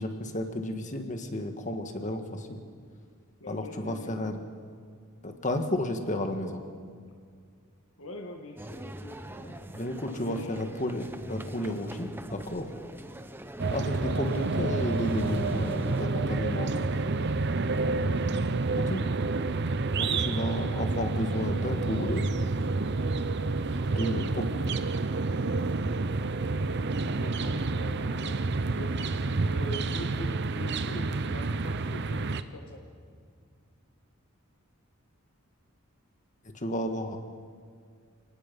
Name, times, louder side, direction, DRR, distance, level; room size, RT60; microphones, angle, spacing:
voice 1, 0.0-2.6 3.5-4.4 5.2-6.6 9.5-12.7 13.7-16.9 18.8-19.0 20.0-22.2 23.9-24.4 36.4-37.2, left 1 dB, 35° left, 6 dB, 1.7 m, -32 dB
voice 2, 3.4-4.3 8.0-9.7 10.1-10.6 19.9-20.3 23.7-23.8 27.0-32.8, left 1 dB, 80° left, 2 dB, 1.9 m, -44 dB
sound 1, 8.6-16.1, right 1 dB, 10° right, 0.8 m, -43 dB
sound 2, 13.6-32.4, right 3 dB, 55° right, 0.7 m, -29 dB
29.0 x 19.0 x 5.4 m, 2.1 s
head